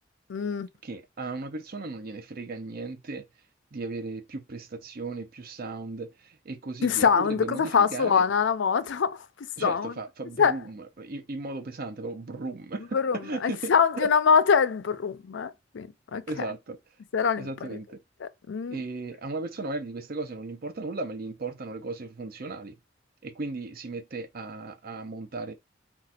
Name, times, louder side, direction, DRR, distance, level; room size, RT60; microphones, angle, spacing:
voice 1, 0.3-0.7 6.8-9.2 9.6-9.9 10.4-10.5 12.9-16.2 17.1-17.5 18.2-18.8, left 6 dB, 80° left, 0.5 m, -24 dB
voice 2, 0.8-3.2 3.7-8.3 9.6-14.1 16.3-16.8 17.4-18.0 18.7-22.7 23.2-25.5, right 3 dB, 55° right, 0.7 m, -36 dB
3.9 x 2.4 x 4.1 m
head